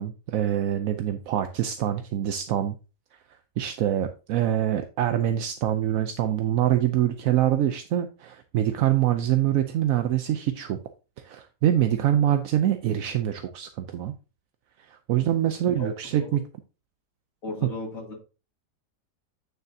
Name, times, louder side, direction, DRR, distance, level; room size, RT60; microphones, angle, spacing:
voice 1, 0.0-2.7 3.6-10.8 11.2-14.1 14.9-16.5, right 11 dB, 65° right, 0.9 m, -25 dB
voice 2, 17.4-18.2, left 2 dB, 50° left, 2.9 m, -35 dB
9.1 x 6.5 x 2.7 m
omnidirectional pair, 1.8 m